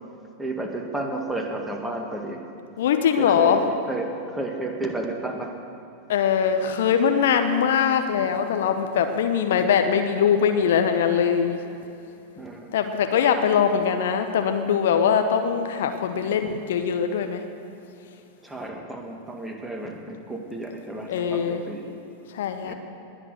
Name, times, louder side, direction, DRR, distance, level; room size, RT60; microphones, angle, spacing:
voice 1, 0.4-2.4 3.2-5.6 12.4-12.8 18.4-21.9 22.6-22.7, right 2 dB, 5° right, 2 dB, 1.9 m, -32 dB
voice 2, 2.8-3.6 6.1-11.6 12.7-17.4 21.1-21.6 22.3-22.7, left 7 dB, 60° left, 7 dB, 1.0 m, -22 dB
20.5 x 8.8 x 6.8 m, 2.7 s
figure-of-eight pair, 90°, 0 cm